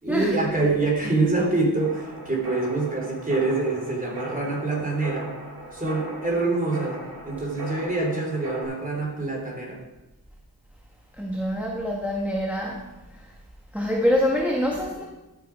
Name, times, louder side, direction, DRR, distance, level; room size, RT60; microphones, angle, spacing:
voice 1, 0.0-5.3 5.7-7.0 7.2-9.8, right 3 dB, 20° right, -1 dB, 3.3 m, -25 dB
sound 1, 1.8-8.6, right 1 dB, 85° right, 3.3 m, -38 dB
voice 2, 11.2-12.9 13.1-13.3 13.7-15.0, equal, 5° right, -1 dB, 1.3 m, -25 dB
13.0 x 7.0 x 4.6 m, 1.1 s
wide cardioid pair, 60°, 39 cm